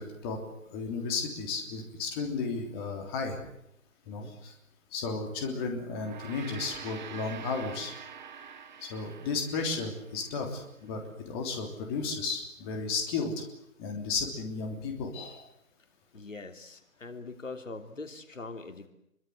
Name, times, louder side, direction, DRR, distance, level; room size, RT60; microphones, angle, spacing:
voice 1, 0.0-3.4 4.1-4.5 4.9-7.9 8.8-13.4 13.8-15.4, left 4 dB, 20° left, 3 dB, 3.3 m, -34 dB
voice 2, 4.0-4.3 16.1-18.9, left 3 dB, 65° left, 7 dB, 3.2 m, -42 dB
Gong, 5.8-10.5, right 7 dB, 35° right, 2.0 m, -46 dB
26.0 x 24.0 x 8.0 m, 0.77 s
figure-of-eight pair, 150°, 41 cm